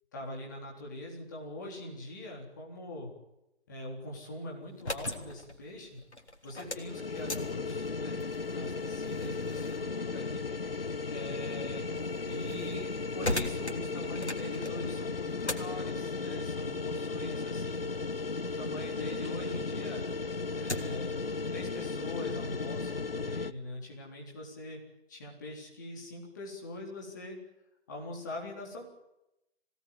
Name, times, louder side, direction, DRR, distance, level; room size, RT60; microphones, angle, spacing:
voice 1, 0.1-3.1 3.7-6.0 6.4-8.2 8.5-10.4 11.1-11.9 12.2-17.9 18.4-20.0 20.5-21.2 21.5-24.8 25.1-27.4 27.9-28.9, left 1 dB, 15° left, -2 dB, 3.7 m, -42 dB
sound 1, 4.6-19.3 19.7-21.1, left 2 dB, 70° left, 3.3 m, -42 dB
sound 2, 6.6-23.5, left 4 dB, 55° left, 1.0 m, -35 dB
24.5 x 18.0 x 9.3 m, 0.88 s
figure-of-eight pair, 165°, 35 cm